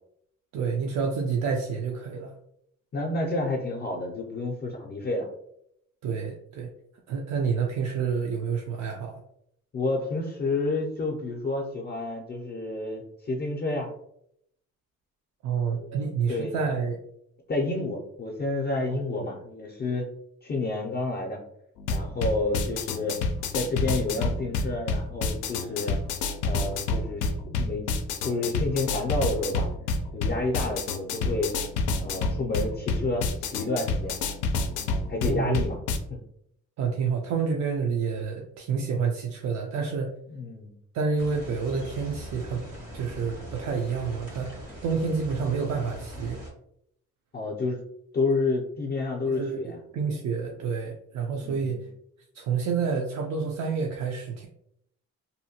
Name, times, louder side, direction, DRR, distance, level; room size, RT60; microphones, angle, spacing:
voice 1, 0.5-2.3 6.0-6.7 7.1-9.2 15.4-17.0 18.9-19.3 35.2-35.6 36.8-40.1 40.9-42.6 42.9-44.6 44.8-46.4 49.2-51.9 52.3-54.5, right 5 dB, 65° right, 1 dB, 0.5 m, -29 dB
voice 2, 2.9-5.3 9.7-13.9 15.7-16.5 17.5-20.1 20.4-21.4 21.9-23.2 23.5-26.0 26.4-27.9 28.2-29.7 30.1-31.6 32.0-34.2 35.1-35.8 36.1-36.2 40.3-40.7 47.3-47.8 48.1-49.8 51.4-51.8, left 2 dB, 35° left, -1 dB, 0.5 m, -30 dB
sound 1, 21.8-36.0, left 3 dB, 90° left, 0.4 m, -29 dB
sound 2, 41.2-46.5, equal, 80° right, 1.4 m, -41 dB
2.7 x 2.1 x 2.7 m, 0.73 s
cardioid pair, 90°, 30 cm